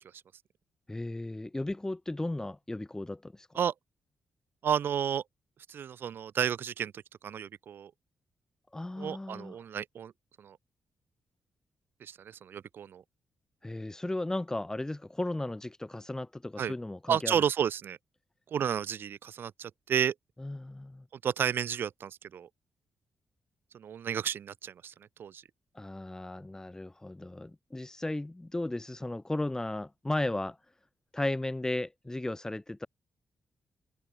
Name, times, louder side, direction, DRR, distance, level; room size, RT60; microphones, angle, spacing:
voice 1, 0.9-3.5 8.7-9.6 13.6-17.4 20.4-21.0 25.7-30.6 31.1-32.9, left 2 dB, 15° left, 4.5 m, -35 dB
voice 2, 4.6-5.2 5.7-6.9 7.2-7.9 9.0-10.1 10.4-10.6 12.0-13.0 16.6-16.7 17.1-18.0 18.5-20.1 21.2-22.5 23.7-24.9 25.2-25.4, right 8 dB, 70° right, 5.2 m, -31 dB
cardioid pair, 70°, 4 cm